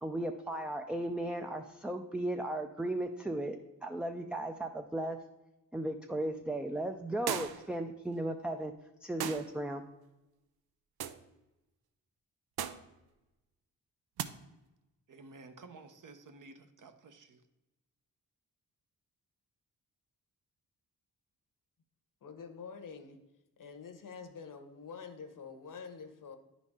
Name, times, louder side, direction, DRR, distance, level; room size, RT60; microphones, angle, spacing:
voice 1, 0.0-3.6 3.8-5.2 5.7-8.7 9.0-9.8, right 1 dB, 5° right, 4 dB, 0.3 m, -36 dB
sound 1, 7.3-7.7 9.2-9.5 11.0-11.2 12.6-12.9 14.2-14.3, right 9 dB, 90° right, 0.5 m, -37 dB
voice 2, 15.1-17.4, right 3 dB, 60° right, 8 dB, 0.8 m, -53 dB
voice 3, 22.2-23.2 23.6-26.4, left 5 dB, 60° left, 8 dB, 0.9 m, -47 dB
9.7 x 4.1 x 3.5 m, 1.0 s
cardioid pair, 80°, 36 cm